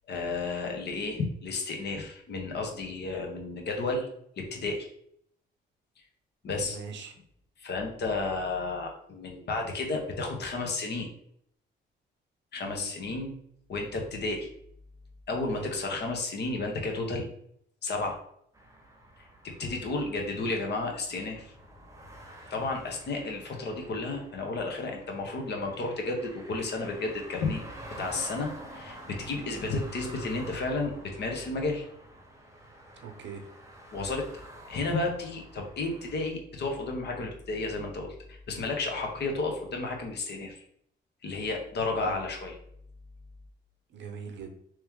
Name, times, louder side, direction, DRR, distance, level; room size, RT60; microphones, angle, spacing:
voice 1, 0.1-4.1 4.4-4.9 6.4-6.8 7.6-11.1 12.5-13.3 13.7-14.5 15.3-17.3 17.8-18.2 19.4-21.5 22.5-27.6 28.0-31.9 33.9-34.3 34.7-40.6 41.2-42.6, left 3 dB, 60° left, 2 dB, 1.1 m, -32 dB
voice 2, 6.6-7.1 12.6-12.9 15.5-15.7 32.9-33.5 39.2-39.3 42.0-42.2 43.9-44.6, right 6 dB, 65° right, 5 dB, 0.8 m, -42 dB
sound 1, 18.5-36.3, right 1 dB, 15° right, 0.9 m, -48 dB
3.1 x 3.0 x 3.6 m, 0.68 s
cardioid pair, 90°, 20 cm